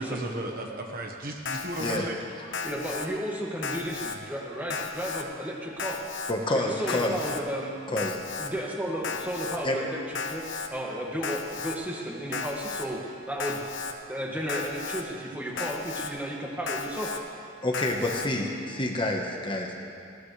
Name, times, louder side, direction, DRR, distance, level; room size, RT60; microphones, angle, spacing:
voice 1, 0.0-2.2, right 1 dB, 50° right, 2 dB, 1.3 m, -34 dB
Alarm, 1.4-2.0 2.5-3.1 3.6-4.2 4.7-5.2 5.8-6.3 6.9-7.4 8.0-8.5 9.0-9.6 10.1-10.7 11.2-11.8 12.3-12.9 13.4-13.9 14.5-15.0 15.6-16.1 16.7-17.2 17.7-18.3, left 5 dB, 80° left, 1.0 m, -34 dB
voice 2, 2.6-6.0 6.5-7.8 8.4-13.7 14.1-17.2, equal, 10° right, -3 dB, 2.0 m, -33 dB
voice 3, 6.3-7.1 7.9-8.2 8.6-8.7 9.6-9.8 15.5-15.6 17.6-19.7, left 1 dB, 25° left, 1 dB, 1.3 m, -28 dB
19.0 x 17.0 x 3.3 m, 2.4 s
head